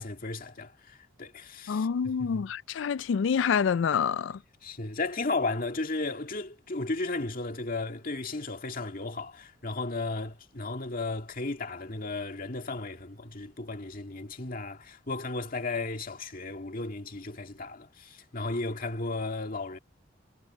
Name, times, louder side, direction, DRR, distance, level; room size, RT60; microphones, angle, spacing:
voice 1, 0.0-1.9 2.3-2.4 4.6-19.8, left 3 dB, 50° left, 2.1 m, -34 dB
voice 2, 1.7-4.4, left 6 dB, 80° left, 0.4 m, -27 dB
head